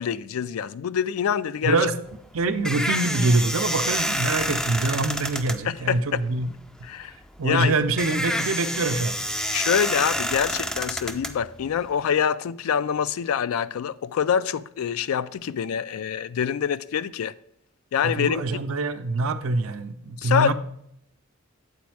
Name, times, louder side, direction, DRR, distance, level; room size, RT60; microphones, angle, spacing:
voice 1, 0.0-1.8 5.6-6.2 6.8-7.1 7.4-7.7 9.5-17.3 17.9-18.4 20.2-20.5, left 8 dB, 80° left, 0.3 m, -25 dB
voice 2, 1.6-1.9 2.3-6.5 7.4-9.2 18.0-20.5, right 2 dB, 75° right, 0.6 m, -24 dB
sound 1, 2.1-12.0, equal, 5° left, 0.4 m, -29 dB
8.3 x 4.2 x 4.6 m
head